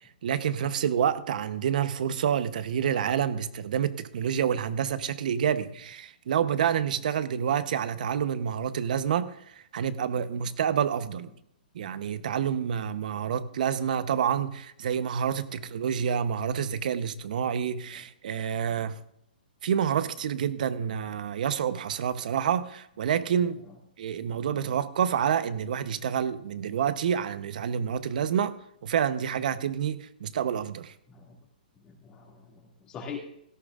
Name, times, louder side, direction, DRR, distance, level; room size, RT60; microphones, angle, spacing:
voice 1, 0.0-11.3 11.7-19.0 19.6-23.6 24.0-28.5 28.8-30.9, right 8 dB, 55° right, 12 dB, 0.9 m, -28 dB
voice 2, 18.6-18.9 24.3-24.7 31.1-31.3 31.8-33.2, left 6 dB, 20° left, 0 dB, 2.4 m, -44 dB
17.0 x 13.5 x 2.5 m, 0.73 s
hypercardioid pair, 155°, 5 cm